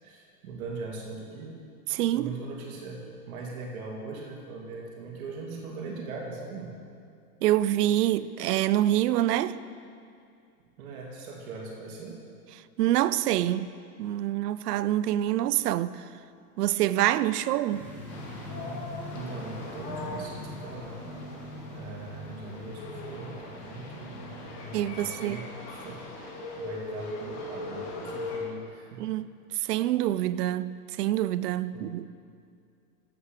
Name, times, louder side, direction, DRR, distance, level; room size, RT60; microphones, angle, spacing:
voice 1, 0.0-1.5 2.1-6.7 10.8-12.2 19.1-21.1 21.7-24.2 24.9-29.1 31.7-31.9, right 3 dB, 60° right, 2.6 m, -40 dB
voice 2, 1.9-2.3 7.4-9.6 12.8-13.7 14.0-16.1 16.6-17.8 24.7-25.4 29.0-29.3 29.5-32.1, right 13 dB, 80° right, 0.6 m, -26 dB
sound 1, 17.7-24.9, left 1 dB, 5° left, 1.8 m, -42 dB
sound 2, 18.1-28.4, left 2 dB, 85° left, 2.7 m, -40 dB
11.5 x 8.6 x 5.2 m
supercardioid pair, 155°, 46 cm